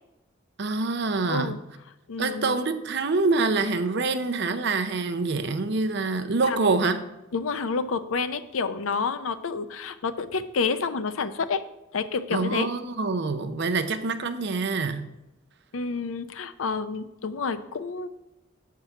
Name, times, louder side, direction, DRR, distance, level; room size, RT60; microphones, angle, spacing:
voice 1, 0.6-1.6 2.2-7.0 12.3-15.1, right 3 dB, 55° right, 9 dB, 0.6 m, -26 dB
voice 2, 2.1-2.6 6.5-6.7 7.3-11.6 11.9-12.7 15.7-18.1, left 4 dB, 80° left, 12 dB, 0.5 m, -29 dB
7.8 x 4.7 x 5.8 m, 0.93 s
head